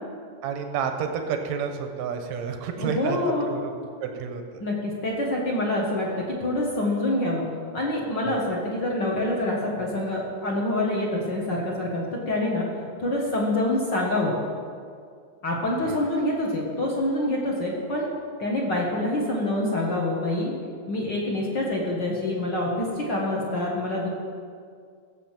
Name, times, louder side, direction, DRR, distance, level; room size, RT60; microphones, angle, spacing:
voice 1, 0.4-3.2 3.5-3.7 4.0-4.4 8.3-8.4 15.9-16.0, right 7 dB, 75° right, 5 dB, 1.6 m, -30 dB
voice 2, 2.8-3.5 4.6-7.5 7.7-12.7 13.0-14.3 15.4-18.1 18.4-20.5 20.9-24.1, left 1 dB, 55° left, -2 dB, 1.2 m, -26 dB
16.0 x 7.0 x 7.4 m, 2.2 s
omnidirectional pair, 4.5 m